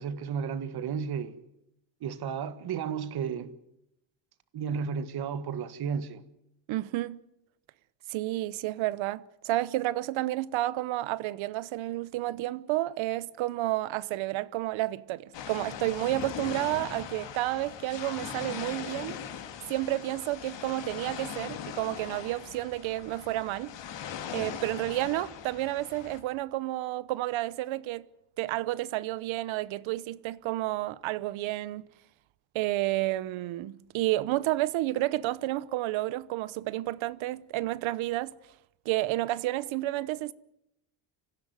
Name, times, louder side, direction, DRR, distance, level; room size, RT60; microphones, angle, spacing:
voice 1, 0.0-1.4 2.0-3.5 4.5-6.2, right 6 dB, 55° right, 1.8 m, -33 dB
voice 2, 6.7-7.2 8.1-19.2 19.7-23.7 24.3-28.1 28.4-31.8 32.5-38.3 38.8-40.3, right 16 dB, 85° right, 1.0 m, -31 dB
sound 1, 15.3-26.2, left 8 dB, 70° left, 3.2 m, -40 dB
25.5 x 15.5 x 9.4 m
cardioid pair, 140°, 45 cm